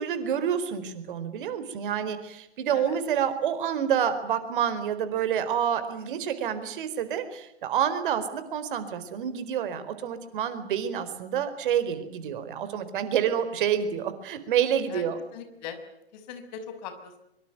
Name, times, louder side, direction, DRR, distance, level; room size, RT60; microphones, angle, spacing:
voice 1, 0.0-15.2, right 8 dB, 50° right, 11 dB, 4.6 m, -28 dB
voice 2, 15.3-15.8 16.1-17.2, left 8 dB, 40° left, 9 dB, 5.9 m, -40 dB
24.5 x 24.5 x 9.4 m, 0.81 s
figure-of-eight pair, 125°, 33 cm